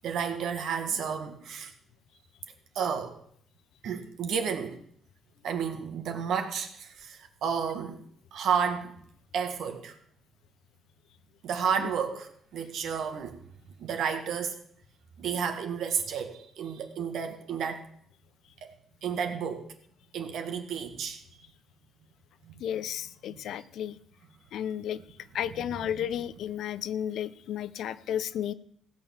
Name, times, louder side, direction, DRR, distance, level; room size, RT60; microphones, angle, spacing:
voice 1, 0.0-1.7 2.8-3.2 3.8-4.8 5.4-8.0 8.3-8.9 9.3-10.0 11.4-13.4 13.8-14.6 15.2-17.8 18.6-18.7 19.0-19.7 20.1-21.2 22.4-22.6 23.3-23.4, right 7 dB, 75° right, 6 dB, 1.9 m, -31 dB
voice 2, 22.6-24.0 24.5-25.0 25.3-28.5, left 10 dB, 75° left, 16 dB, 0.6 m, -33 dB
16.5 x 6.8 x 7.2 m, 0.66 s
cardioid pair, 90°, 0 cm